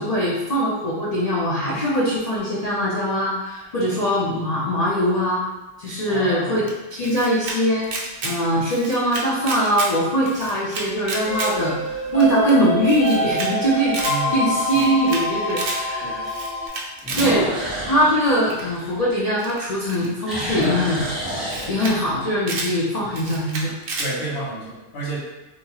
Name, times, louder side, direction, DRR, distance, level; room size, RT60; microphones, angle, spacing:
voice 1, 0.0-5.4 5.8-7.9 8.2-14.0 14.3-16.2 17.2-17.5 17.9-21.0 21.7-23.7, equal, 85° left, -8 dB, 0.3 m, -22 dB
Werewolf Stalks Then Pounces, 3.3-4.0 4.7-4.8 10.0-10.5 10.9-11.0 11.6-11.7 12.0-12.1 13.6-13.7 17.0-19.5 19.9-22.2, equal, ahead, 0.9 m, -30 dB
voice 2, 6.1-6.6 14.0-14.9 16.0-16.2 24.0-25.2, right 2 dB, 60° left, -6 dB, 1.0 m, -31 dB
Camera, 6.7-7.6 7.8-8.3 8.7-9.9 10.2-11.5 11.9-12.0 12.2-12.3 12.5-12.6 12.9-13.5 13.8-14.2 14.6-15.2 15.5-15.8 16.2-17.3 18.5-18.8 19.4-20.6 21.2-21.3 21.5-21.9 22.2-22.7 23.1-24.1, right 3 dB, 65° right, 0.6 m, -30 dB
sound 1, 11.3-16.7, left 1 dB, 30° right, 1.0 m, -25 dB
2.8 x 2.3 x 2.7 m, 1.1 s
omnidirectional pair, 1.3 m